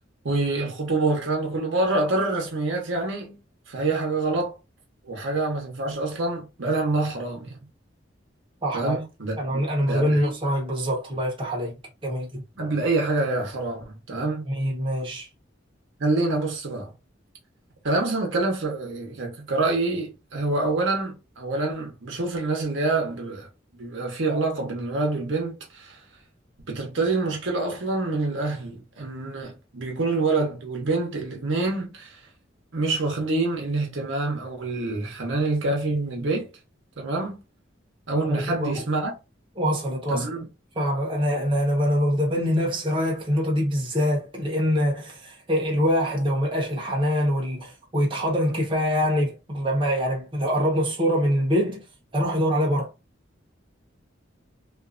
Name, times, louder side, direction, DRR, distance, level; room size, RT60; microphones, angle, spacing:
voice 1, 0.2-3.4 3.7-4.5 5.0-7.6 8.7-10.3 12.6-14.4 16.0-16.9 17.8-23.5 23.7-26.0 26.7-32.2 32.7-36.5 37.0-37.4 38.1-39.1 40.1-40.5, right 2 dB, 75° right, 0.9 m, -26 dB
voice 2, 8.6-9.0 9.4-11.7 12.0-12.4 14.4-15.3 38.4-38.8 39.6-40.3 40.7-51.8 52.1-52.9, equal, 25° right, 0.8 m, -24 dB
2.5 x 2.3 x 2.4 m
head